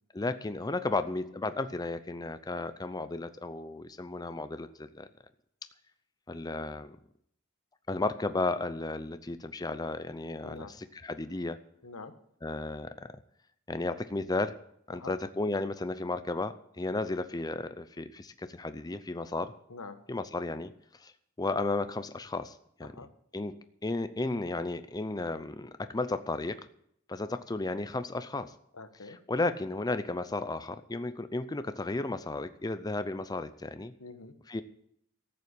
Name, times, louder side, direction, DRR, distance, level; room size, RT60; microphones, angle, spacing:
voice 1, 0.1-5.1 6.3-7.0 7.9-11.6 12.4-12.9 13.7-14.6 14.9-19.5 20.1-20.7 21.0-21.1 21.4-22.9 23.3-23.6 23.8-26.7 27.1-28.5 29.3-33.9 34.5-34.6, left 2 dB, 20° left, 11 dB, 0.5 m, -34 dB
voice 2, 11.8-12.1 14.9-15.1 19.7-20.0 22.8-23.1 28.7-29.2 34.0-34.3, left 3 dB, 85° left, 9 dB, 1.4 m, -45 dB
14.0 x 7.8 x 8.4 m, 0.69 s
head